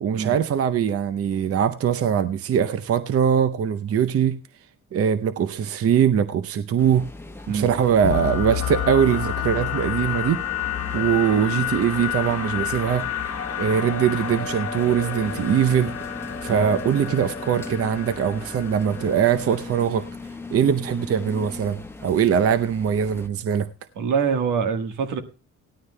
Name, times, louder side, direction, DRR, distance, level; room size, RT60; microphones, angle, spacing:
voice 1, 0.0-4.4 4.9-7.1 7.5-10.4 10.9-13.1 13.6-15.9 16.4-20.0 20.5-23.7, right 8 dB, 50° right, 0.7 m, -22 dB
sound 1, 6.8-23.3, left 2 dB, 10° left, 1.0 m, -38 dB
sound 2, 8.0-19.8, left 9 dB, 55° left, 1.2 m, -30 dB
voice 2, 24.0-25.2, right 6 dB, 80° right, 1.4 m, -24 dB
17.5 x 13.0 x 2.2 m
cardioid pair, 90°, 30 cm